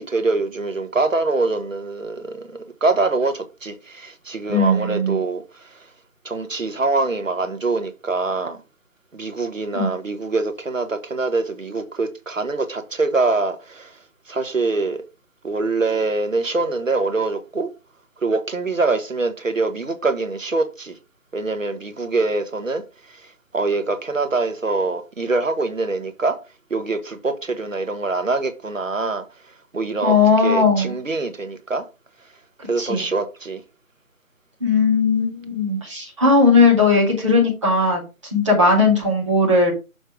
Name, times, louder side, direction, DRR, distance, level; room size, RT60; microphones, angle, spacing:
voice 1, 0.0-5.8 6.2-8.6 9.1-14.0 14.3-15.0 15.4-17.7 18.2-20.9 21.3-22.8 23.1-26.4 26.7-29.2 29.7-30.1 30.4-31.8 32.6-33.6, right 3 dB, 60° right, 1.4 m, -24 dB
voice 2, 4.5-5.2 9.7-9.9 30.0-30.9 32.8-33.0 34.6-38.0 38.3-39.7, left 3 dB, 20° right, 2.2 m, -17 dB
6.6 x 4.3 x 5.0 m
figure-of-eight pair, 160°, 44 cm